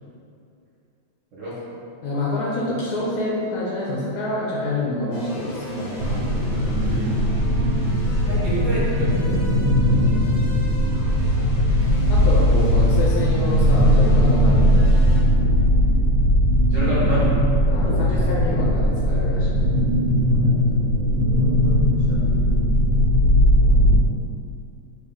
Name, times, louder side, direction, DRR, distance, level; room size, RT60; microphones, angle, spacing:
voice 1, 2.0-6.2 9.9-10.4 12.1-15.2 17.7-19.5, left 1 dB, 70° left, -5 dB, 1.0 m, -27 dB
sound 1, 5.1-15.2, left 1 dB, 90° left, 1.5 m, -40 dB
sound 2, 6.0-24.0, equal, 90° right, 1.3 m, -18 dB
voice 2, 6.8-7.2 8.3-9.7 16.7-17.3 17.8-18.0 20.4-20.5 21.4-21.8 22.1-22.4, right 1 dB, 50° right, -9 dB, 1.0 m, -29 dB
3.3 x 2.7 x 3.6 m, 2.6 s
omnidirectional pair, 2.0 m